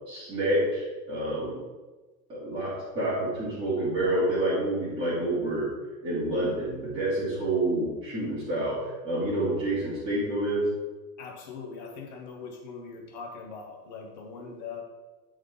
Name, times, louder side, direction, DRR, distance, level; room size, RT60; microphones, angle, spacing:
voice 1, 0.1-1.6 2.3-5.7 6.0-10.6, right 1 dB, 10° right, -10 dB, 2.0 m, -28 dB
voice 2, 11.2-14.8, left 5 dB, 30° left, 1 dB, 0.6 m, -41 dB
11.5 x 3.8 x 3.6 m, 1.2 s
supercardioid pair, 180°, 47 cm